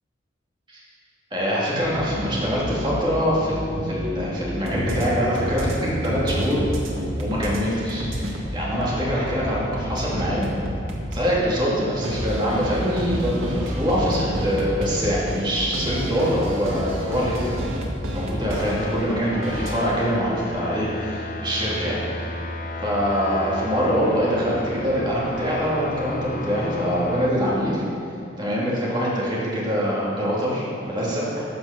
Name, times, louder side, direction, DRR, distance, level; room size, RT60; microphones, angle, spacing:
voice 1, 1.3-10.5 11.1-17.8 18.1-22.4 22.8-27.8 28.4-31.4, equal, 25° right, -7 dB, 2.7 m, -24 dB
sound 1, 1.8-7.6 7.9-11.3 12.0-19.8, equal, 85° right, 1.7 m, -29 dB
sound 2, 18.5-27.3, left 2 dB, 40° left, 0.8 m, -33 dB
12.5 x 6.1 x 6.7 m, 2.7 s
head